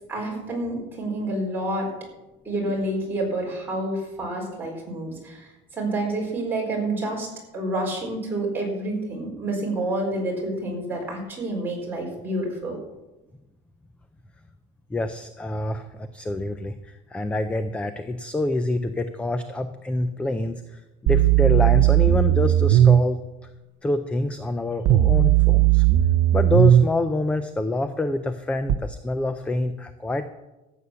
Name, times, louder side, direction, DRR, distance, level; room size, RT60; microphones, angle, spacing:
voice 1, 0.1-1.9 2.4-7.3 7.5-12.8, right 1 dB, 10° right, -3 dB, 4.3 m, -28 dB
voice 2, 14.9-23.2 23.8-25.8 26.3-30.2, left 2 dB, 5° left, 10 dB, 0.4 m, -26 dB
sound 1, 21.1-23.0 24.9-26.9 28.7-28.8, right 12 dB, 45° right, 0.6 m, -17 dB
14.0 x 8.4 x 6.9 m, 1.0 s
cardioid pair, 170°, 18 cm